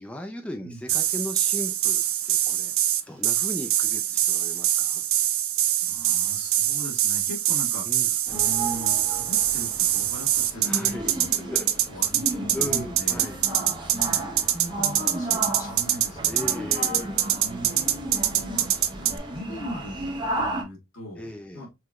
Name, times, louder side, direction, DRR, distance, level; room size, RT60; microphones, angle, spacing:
voice 1, 0.0-2.7 3.1-5.0 7.9-8.1 10.6-11.7 12.5-13.4 16.3-17.2 21.2-21.7, left 1 dB, 5° left, 0.4 m, -37 dB
sound 1, 0.9-19.2, right 12 dB, 65° right, 0.5 m, -24 dB
voice 2, 5.8-11.3 11.9-16.7 17.4-18.7 18.9-20.0 20.3-21.7, equal, 70° left, 2.1 m, -39 dB
sound 2, 8.3-20.6, right 1 dB, 20° right, 1.1 m, -34 dB
4.6 x 3.1 x 2.4 m
head